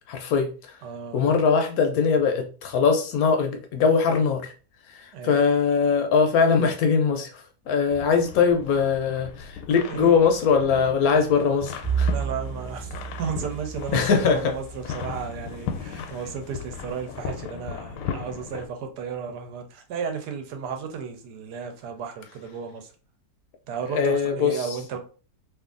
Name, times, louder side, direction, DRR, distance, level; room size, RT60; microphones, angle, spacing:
voice 1, 0.1-0.8 1.1-4.5 4.9-12.1 13.9-14.5 15.9-16.1 23.9-24.7, left 5 dB, 70° left, 1.0 m, -22 dB
voice 2, 0.8-1.2 5.1-5.4 9.9-10.2 12.1-22.9 23.7-25.0, right 6 dB, 80° right, 1.2 m, -34 dB
sound 1, 7.9-18.7, left 7 dB, 85° left, 1.2 m, -37 dB
Bowed string instrument, 11.8-16.4, right 7 dB, 20° right, 1.0 m, -32 dB
2.8 x 2.5 x 3.7 m
omnidirectional pair, 1.8 m